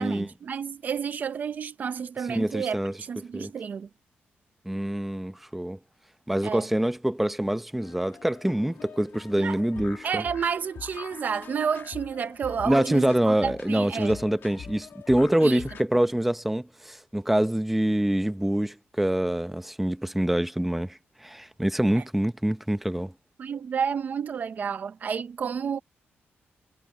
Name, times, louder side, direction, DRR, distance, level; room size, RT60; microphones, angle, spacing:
voice 1, 0.0-3.9 6.4-6.7 9.4-9.6 10.0-14.2 15.4-15.6 21.9-22.0 23.4-25.8, right 7 dB, 45° right, 0.7 m, -30 dB
voice 2, 2.3-2.9 3.3-3.5 4.7-5.8 6.3-10.2 12.6-23.1, right 1 dB, 5° right, 0.7 m, -25 dB
sound 1, 7.8-15.8, left 7 dB, 55° left, 1.8 m, -44 dB
wide cardioid pair, 170°, 4 cm